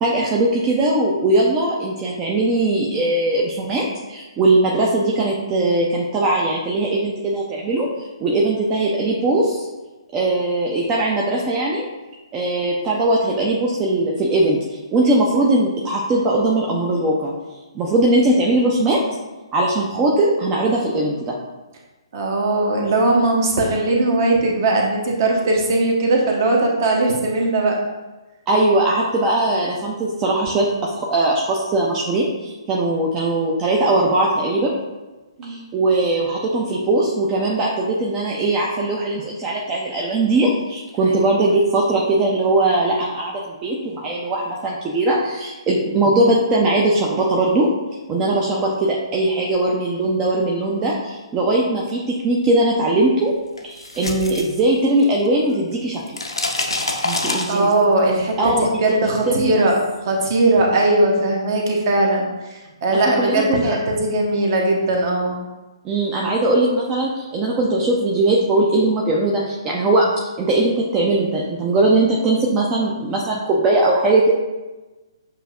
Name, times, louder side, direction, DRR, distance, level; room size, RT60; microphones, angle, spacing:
voice 1, 0.0-9.7 10.1-11.9 12.3-14.6 14.9-17.3 17.7-19.0 19.5-21.4 28.5-34.7 35.4-47.7 48.1-53.3 53.6-56.0 57.0-57.7 58.4-59.0 59.3-59.6 62.9-63.8 65.8-70.1 70.4-74.3, right 2 dB, 20° right, -3 dB, 0.5 m, -20 dB
voice 2, 22.1-27.8 35.4-35.6 41.0-41.3 57.1-59.8 60.0-62.2 62.5-65.4, right 2 dB, 40° right, 0 dB, 0.9 m, -19 dB
sound 1, 53.6-55.3 55.5-58.0, left 2 dB, 75° left, 0.6 m, -26 dB
7.5 x 2.7 x 2.4 m, 1.2 s
figure-of-eight pair, 130°, 3 cm